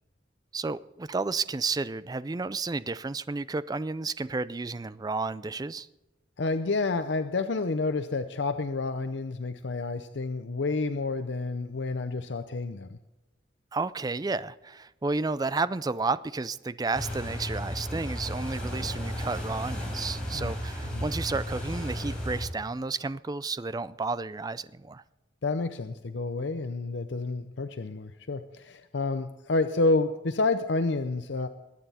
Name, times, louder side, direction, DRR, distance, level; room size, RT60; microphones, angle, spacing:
voice 1, 0.5-5.9 13.7-25.0, right 3 dB, 20° right, 0.4 m, -32 dB
voice 2, 6.4-13.0 20.3-20.5 20.9-21.0 25.4-31.5, left 3 dB, 70° left, 0.7 m, -29 dB
sound 1, 16.9-22.5, equal, 5° left, 4.9 m, -34 dB
21.5 x 9.2 x 4.2 m
head